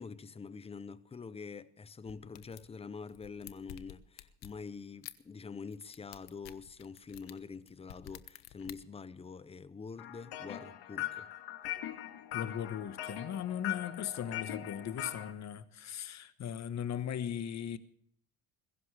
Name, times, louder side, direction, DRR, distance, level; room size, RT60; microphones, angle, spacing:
voice 1, 0.0-11.3, left 5 dB, 15° left, 0.6 m, -46 dB
sound 1, 2.0-2.7 3.1-4.6 5.0-5.1 5.7-8.7, left 14 dB, 85° left, 1.3 m, -50 dB
sound 2, 10.0-15.3, left 13 dB, 65° left, 2.1 m, -41 dB
voice 2, 12.3-17.8, left 9 dB, 40° left, 1.3 m, -38 dB
21.5 x 16.5 x 3.3 m
cardioid pair, 150°, 42 cm